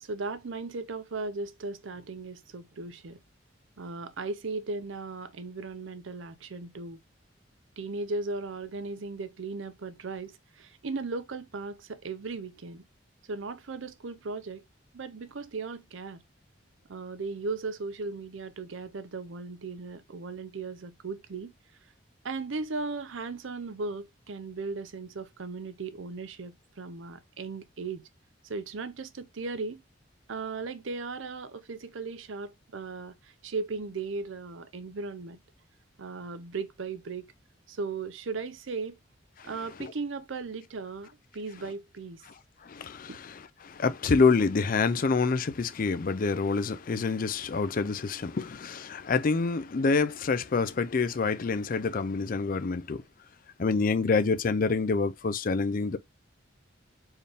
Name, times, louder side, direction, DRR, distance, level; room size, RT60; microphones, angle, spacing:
voice 1, 0.0-3.2 3.8-7.0 7.8-12.8 13.3-14.6 14.9-16.2 16.9-21.5 22.2-28.1 28.5-29.8 30.3-33.1 33.4-35.4 36.0-37.3 37.7-39.0 39.4-42.2 43.1-43.2, right 3 dB, 80° right, 0.6 m, -37 dB
voice 2, 42.6-53.0 53.6-56.0, left 4 dB, 45° left, 0.4 m, -27 dB
4.4 x 3.5 x 3.4 m
head